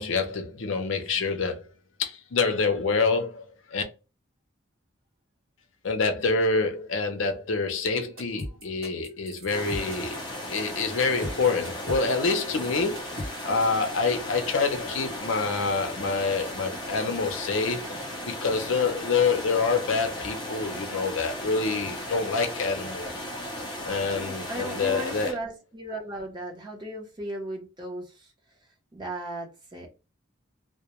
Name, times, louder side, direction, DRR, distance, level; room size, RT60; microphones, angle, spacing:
voice 1, 0.0-1.7 2.0-3.8 5.8-23.2 23.8-25.3, left 4 dB, 70° left, 0.5 m, -27 dB
sound 1, 8.2-13.9, equal, 75° right, 0.8 m, -38 dB
sound 2, 9.5-25.3, left 1 dB, 20° left, 0.5 m, -36 dB
voice 2, 24.2-28.3 28.9-29.9, right 1 dB, 20° right, 0.7 m, -36 dB
2.2 x 2.1 x 2.9 m
head